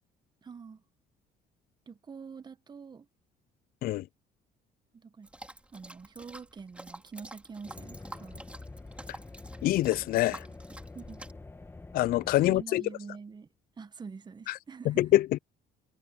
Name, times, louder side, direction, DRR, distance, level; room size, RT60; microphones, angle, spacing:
voice 1, 0.4-0.8 1.9-3.1 4.9-5.3 5.7-8.4 10.5-10.6 10.9-11.3 12.4-13.5 13.8-15.1, right 5 dB, 25° right, 1.1 m, -45 dB
sound 1, 5.2-11.3, right 1 dB, 5° right, 3.1 m, -49 dB
sound 2, 7.7-12.6, left 3 dB, 15° left, 1.8 m, -46 dB
voice 2, 9.6-10.4 11.9-12.8 14.5-14.6 14.9-15.4, left 15 dB, 60° left, 0.4 m, -25 dB
cardioid pair, 110°, 17 cm